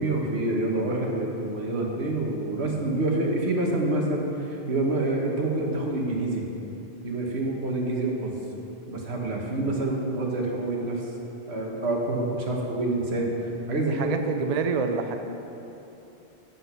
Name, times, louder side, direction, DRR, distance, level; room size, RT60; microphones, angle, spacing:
voice 1, 0.0-6.5 7.0-8.4 8.9-11.0 11.5-13.3 13.7-14.1, right 2 dB, 80° right, -1 dB, 1.5 m, -27 dB
voice 2, 13.8-15.2, right 5 dB, 50° right, 6 dB, 0.5 m, -27 dB
8.2 x 7.2 x 5.6 m, 3.0 s
omnidirectional pair, 1.1 m